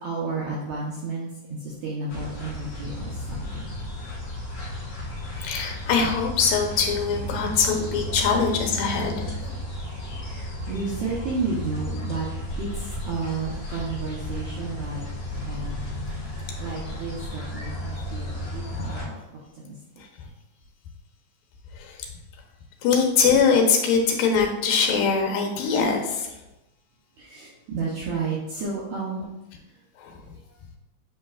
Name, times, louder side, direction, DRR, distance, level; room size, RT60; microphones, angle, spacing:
voice 1, 0.0-3.8 10.1-12.3 12.6-15.0 15.5-15.8 16.6-19.2 19.5-19.8 27.2-29.2 29.7-29.8, right 4 dB, 70° right, -5 dB, 1.9 m, -32 dB
sound 1, 2.1-19.0, left 1 dB, 35° left, 2.7 m, -34 dB
voice 2, 5.3-9.3 18.7-18.8 20.2-20.3 21.7-22.0 22.8-26.4 30.0-30.3, left 5 dB, 75° left, 2 dB, 2.6 m, -23 dB
7.6 x 5.1 x 2.4 m, 0.93 s
omnidirectional pair, 4.1 m